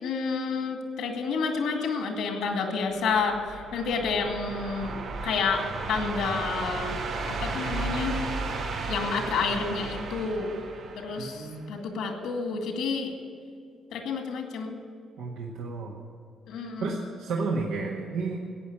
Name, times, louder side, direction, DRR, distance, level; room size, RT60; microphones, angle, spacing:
voice 1, 0.0-5.6 5.9-7.0 7.3-8.2 8.9-10.5 11.0-13.1 13.9-14.8 16.5-17.0, left 5 dB, 85° left, 4 dB, 2.2 m, -29 dB
sound 1, 3.1-11.6, right 3 dB, 65° right, 4.3 m, -34 dB
voice 2, 11.2-11.7 15.2-16.0 16.8-18.5, right 4 dB, 90° right, -2 dB, 1.5 m, -32 dB
14.5 x 9.0 x 9.9 m, 2.3 s
cardioid pair, 90°, 0 cm